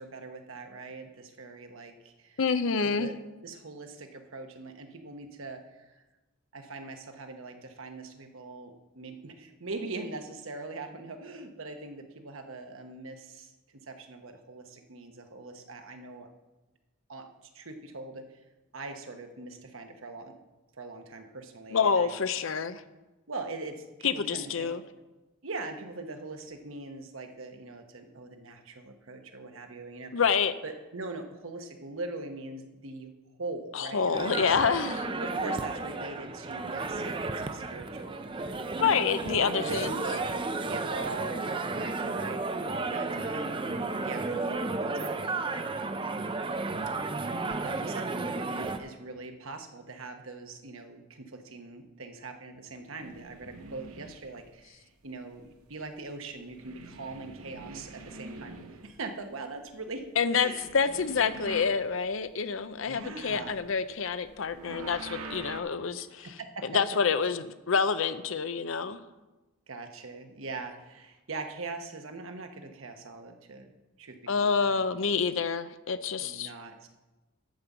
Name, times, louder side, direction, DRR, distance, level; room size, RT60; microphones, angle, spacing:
voice 1, 0.0-2.4 2.8-3.1 3.4-6.0 6.5-16.3 17.1-18.2 18.7-20.3 20.8-22.1 23.3-24.8 25.4-30.2 30.6-33.1 33.4-34.6 35.2-39.4 39.7-45.6 46.9-47.0 47.6-60.0 60.3-60.7 62.9-63.5 66.2-66.7 69.7-73.7 74.0-75.0 76.2-76.9, right 3 dB, 70° right, 5 dB, 1.1 m, -42 dB
voice 2, 2.4-3.1 21.7-22.8 24.0-24.8 30.1-30.5 33.7-35.1 38.8-39.9 60.2-66.3 66.6-69.0 74.3-76.5, left 5 dB, 65° left, 13 dB, 0.6 m, -27 dB
sound 1, 34.1-48.8, right 3 dB, 25° right, 0.5 m, -33 dB
sound 2, 53.0-54.5 55.1-56.1 56.4-59.2 59.5-62.3 62.6-65.6, right 3 dB, 90° right, 0.9 m, -45 dB
11.5 x 5.2 x 7.2 m, 1.1 s
head